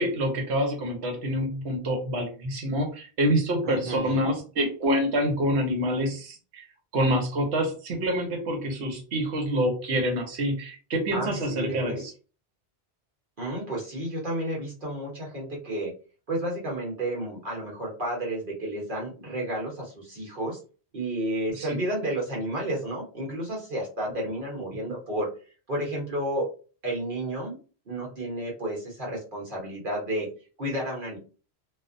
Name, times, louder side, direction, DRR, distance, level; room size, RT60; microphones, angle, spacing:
voice 1, 0.0-6.6 6.9-12.1 21.6-21.7, equal, 75° right, 3 dB, 1.0 m, -27 dB
voice 2, 3.6-4.3 11.1-12.1 13.4-15.9 16.3-20.6 20.9-25.3 25.7-26.5 26.8-27.6 27.9-30.3 30.6-31.2, right 1 dB, 55° right, -3 dB, 1.0 m, -31 dB
2.4 x 2.1 x 2.5 m, 0.36 s
omnidirectional pair, 1.1 m